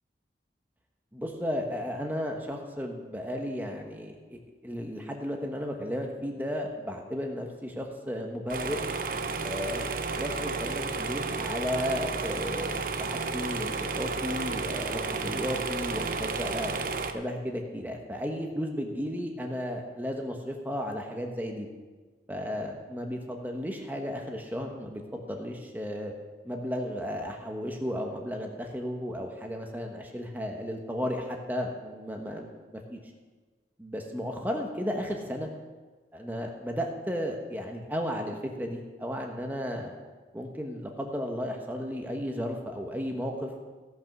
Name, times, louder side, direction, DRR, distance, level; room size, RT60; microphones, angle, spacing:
voice 1, 1.1-8.8 9.4-16.7 17.1-21.7 22.3-26.1 26.4-33.0 33.8-35.5 36.1-39.9 40.3-43.5, equal, 10° right, 2 dB, 1.2 m, -34 dB
sound 1, 8.5-17.1, right 4 dB, 50° right, 0.7 m, -32 dB
16.5 x 6.1 x 6.1 m, 1.3 s
head